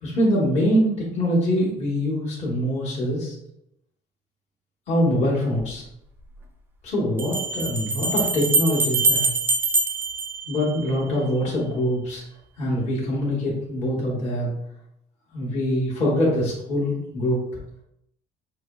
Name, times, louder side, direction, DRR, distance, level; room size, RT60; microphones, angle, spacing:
voice 1, 0.0-3.3 4.9-5.8 6.8-9.3 10.5-12.2 12.6-14.5 15.3-17.4, equal, 35° left, -6 dB, 1.1 m, -24 dB
sound 1, 5.6-5.7 7.2-11.2, right 3 dB, 10° right, 0.3 m, -24 dB
5.8 x 2.8 x 2.3 m, 0.78 s
cardioid pair, 175°, 18 cm